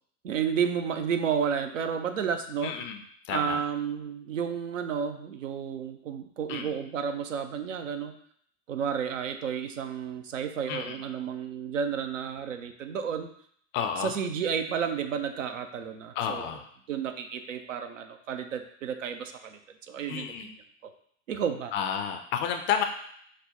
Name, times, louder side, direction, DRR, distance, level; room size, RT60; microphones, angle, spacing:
voice 1, 0.2-2.7 3.3-8.1 8.7-13.3 14.0-16.5 16.9-19.6 19.9-20.6 21.3-21.7, right 7 dB, 80° right, 7 dB, 0.5 m, -31 dB
voice 2, 2.6-3.0 3.2-3.6 6.5-6.7 10.7-11.0 13.7-14.1 16.2-16.7 20.1-20.5 21.7-22.8, left 8 dB, 30° left, 6 dB, 0.4 m, -31 dB
5.3 x 2.1 x 3.8 m, 0.64 s
figure-of-eight pair, 80°, 38 cm